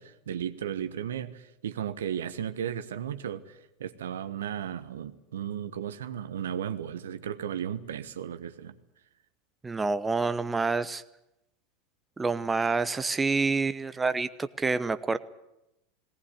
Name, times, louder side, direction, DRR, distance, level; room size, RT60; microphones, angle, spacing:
voice 1, 0.0-8.8, right 9 dB, 80° right, 10 dB, 1.2 m, -35 dB
voice 2, 9.6-11.0 12.2-15.2, right 4 dB, 15° right, 12 dB, 0.9 m, -27 dB
19.0 x 18.5 x 10.0 m, 0.89 s
hypercardioid pair, 90°, 0 cm